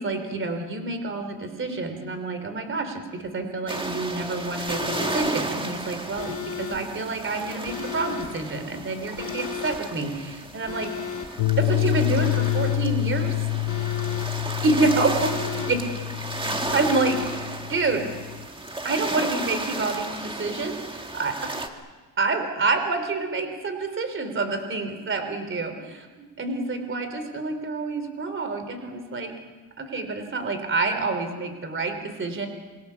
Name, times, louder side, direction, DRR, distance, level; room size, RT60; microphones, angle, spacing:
voice 1, 0.0-11.1 11.6-13.5 14.6-15.3 15.7-15.8 16.7-18.1 18.8-21.5 22.2-26.1 26.4-29.4 29.8-32.5, right 3 dB, 30° right, 7 dB, 3.5 m, -28 dB
sound 1, 3.7-21.7, right 2 dB, 15° right, 1.9 m, -34 dB
Alarm, 4.7-5.3 6.2-6.8 7.7-8.3 9.2-9.8 10.7-11.3 12.2-12.8 13.7-14.3 15.2-15.8 16.7-17.3, left 7 dB, 35° left, 5.0 m, -34 dB
sound 2, 11.4-18.5, left 19 dB, 75° left, 0.7 m, -27 dB
27.5 x 23.5 x 7.0 m, 1.3 s
cardioid pair, 140°, 38 cm